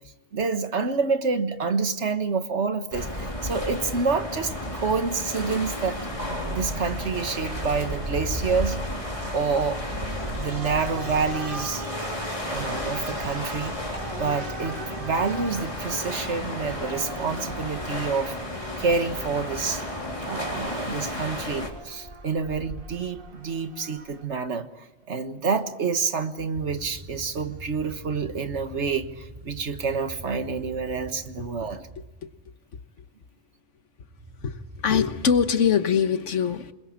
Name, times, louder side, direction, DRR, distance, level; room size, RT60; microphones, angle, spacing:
voice 1, 0.3-6.0 6.5-8.8 9.3-9.8 10.4-11.8 12.5-13.7 14.2-18.4 18.8-19.8 20.2-31.9, right 5 dB, 70° right, 9 dB, 1.7 m, -28 dB
sound 1, 2.9-21.7, left 1 dB, 25° left, 3.7 m, -33 dB
sound 2, 5.3-24.2, right 2 dB, 45° right, 2.3 m, -38 dB
sound 3, 26.5-32.5 34.0-35.6, equal, 30° right, 3.9 m, -44 dB
voice 2, 34.4-36.7, left 7 dB, 85° left, 10 dB, 1.6 m, -23 dB
27.5 x 21.5 x 8.7 m, 0.98 s
omnidirectional pair, 1.2 m